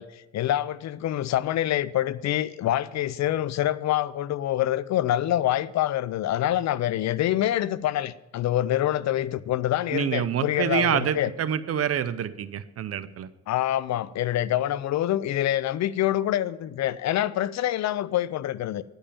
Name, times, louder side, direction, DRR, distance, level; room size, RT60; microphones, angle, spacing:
voice 1, 0.0-11.3 13.5-18.8, left 13 dB, 65° left, 0.5 m, -26 dB
voice 2, 9.9-13.3, right 9 dB, 50° right, 0.7 m, -27 dB
10.0 x 5.4 x 8.4 m
cardioid pair, 90°, 30 cm